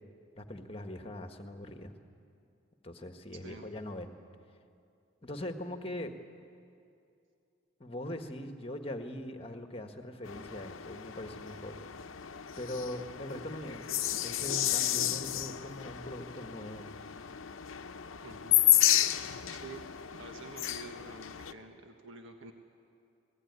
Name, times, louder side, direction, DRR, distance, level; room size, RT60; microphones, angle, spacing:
voice 1, 0.4-1.9 2.8-4.2 5.2-6.1 7.8-11.8 12.6-16.9, left 1 dB, 25° left, 6 dB, 1.5 m, -41 dB
voice 2, 3.3-3.7 18.2-18.6 19.5-19.8 20.1-22.5, right 3 dB, 70° right, 4 dB, 1.5 m, -48 dB
sound 1, 10.2-21.5, left 12 dB, 75° left, 0.8 m, -32 dB
27.0 x 18.5 x 9.6 m, 2.5 s
head